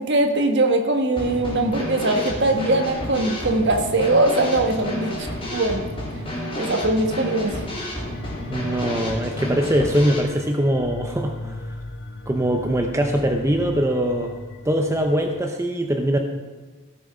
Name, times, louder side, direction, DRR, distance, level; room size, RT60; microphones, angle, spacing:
voice 1, 0.0-5.8 6.6-7.6, right 2 dB, 50° right, 4 dB, 1.4 m, -21 dB
Drum kit / Snare drum, 1.2-10.2, equal, 25° left, 3.5 m, -30 dB
sound 1, 8.1-15.4, left 2 dB, 50° left, 1.0 m, -37 dB
voice 2, 8.5-11.6 12.3-14.3 14.6-16.2, equal, 15° right, 3 dB, 0.7 m, -22 dB
17.0 x 6.9 x 5.0 m, 1.3 s
head